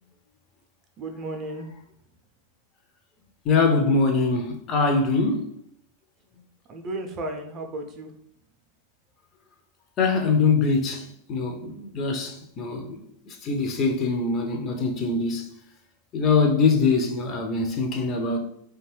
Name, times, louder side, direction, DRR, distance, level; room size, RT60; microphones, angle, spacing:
voice 1, 1.0-1.7 6.7-8.1, right 2 dB, 30° right, 0.4 m, -34 dB
voice 2, 3.5-5.5 10.0-13.0 13.3-15.5 16.1-18.4, left 4 dB, 30° left, 0.4 m, -23 dB
2.5 x 2.2 x 3.2 m
figure-of-eight pair, 90°, 0 cm